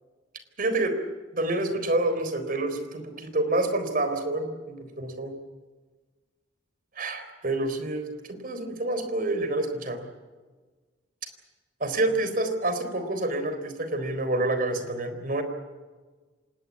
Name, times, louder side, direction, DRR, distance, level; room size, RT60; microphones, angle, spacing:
voice 1, 0.6-0.9 1.3-5.3 7.0-10.1 11.8-15.4, right 2 dB, 50° right, 8 dB, 3.9 m, -28 dB
26.5 x 19.5 x 8.6 m, 1.4 s
head